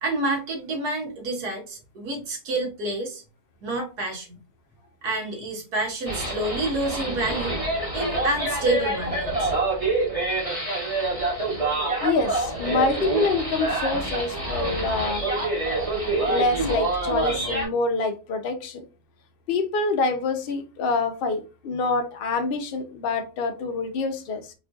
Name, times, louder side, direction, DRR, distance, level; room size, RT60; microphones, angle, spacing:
voice 1, 0.0-3.2 3.6-4.3 5.0-7.5 7.9-9.5, right 2 dB, 90° right, 1.6 m, -28 dB
sound 1, 6.1-17.7, right 2 dB, 25° right, 0.9 m, -26 dB
voice 2, 12.0-15.2 16.3-18.8 19.5-24.5, left 3 dB, 75° left, 0.5 m, -26 dB
4.3 x 2.5 x 2.3 m
omnidirectional pair, 1.6 m